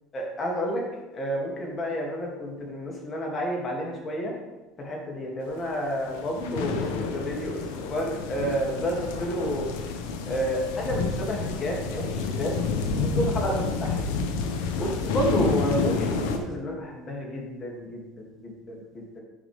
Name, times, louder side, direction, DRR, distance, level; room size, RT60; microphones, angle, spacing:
voice 1, 0.1-0.8 1.1-4.3 4.8-9.7 10.3-12.6 13.2-14.0 14.8-19.2, equal, 35° left, -1 dB, 2.5 m, -30 dB
sound 1, 6.0-16.4, left 4 dB, 80° left, 0.8 m, -29 dB
9.6 x 5.1 x 3.5 m, 1.1 s
supercardioid pair, 90°, 0 cm